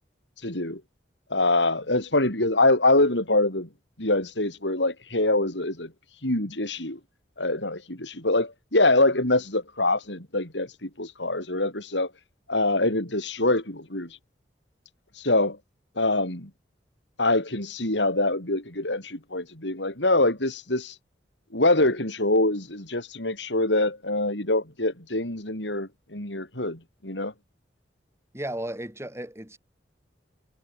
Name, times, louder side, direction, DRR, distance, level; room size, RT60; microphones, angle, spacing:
voice 1, 0.4-0.8 1.3-3.7 4.0-5.9 6.2-7.0 7.4-12.1 12.5-14.1 15.2-15.6 16.0-16.5 17.2-20.9 21.5-27.3, left 2 dB, 85° left, 7.4 m, -24 dB
voice 2, 28.3-29.6, right 1 dB, 15° right, 7.7 m, -34 dB
head